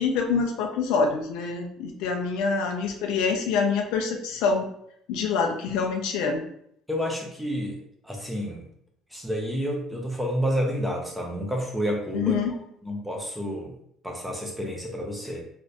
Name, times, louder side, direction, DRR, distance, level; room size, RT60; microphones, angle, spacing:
voice 1, 0.0-4.7 5.1-6.4 12.1-12.6, left 5 dB, 85° left, 2 dB, 0.5 m, -26 dB
voice 2, 6.9-8.6 9.1-12.3 12.8-13.7 14.0-15.4, equal, 5° right, 0 dB, 0.6 m, -29 dB
2.6 x 2.5 x 3.3 m, 0.71 s
cardioid pair, 155°, 0 cm